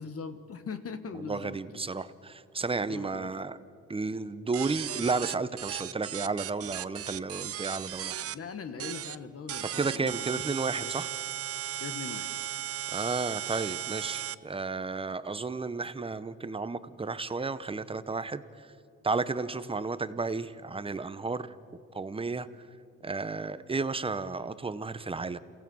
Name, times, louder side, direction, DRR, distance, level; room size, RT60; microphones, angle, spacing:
voice 1, 0.0-1.8 2.8-3.3 8.3-10.4 10.8-11.1 11.8-12.3, left 5 dB, 50° left, 10 dB, 1.5 m, -41 dB
voice 2, 1.1-3.6 3.9-8.2 9.6-11.1 12.9-18.7 19.0-21.5 21.9-22.5 23.0-25.4, right 4 dB, 20° right, 14 dB, 0.8 m, -33 dB
sound 1, 4.5-8.4 8.8-9.2 9.5-14.4, right 11 dB, 50° right, 0.6 m, -36 dB
29.0 x 16.0 x 6.3 m, 2.6 s
cardioid pair, 90°, 30 cm